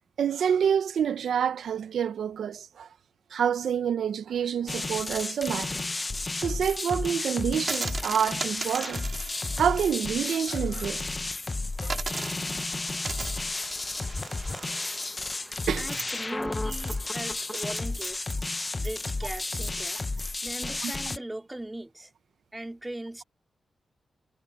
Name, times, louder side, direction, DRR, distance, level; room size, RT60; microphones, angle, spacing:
voice 1, 0.2-2.9 3.3-5.9 6.4-9.1 9.6-11.0 11.8-12.0 12.5-12.6 14.5-14.8 15.7-15.9 20.8-20.9, right 8 dB, 85° right, 0.8 m, -28 dB
sound 1, 4.7-21.2, left 3 dB, 25° left, 0.8 m, -32 dB
sound 2, 7.6-11.0 11.3-11.4 11.8-20.2, right 4 dB, 45° right, 4.6 m, -39 dB
sound 3, 12.7-17.7, left 1 dB, 10° left, 1.5 m, -42 dB
voice 2, 15.8-18.3 18.8-20.0 20.4-22.1 22.5-23.2, right 1 dB, 15° right, 3.5 m, -39 dB
wide cardioid pair, 100°, 0 cm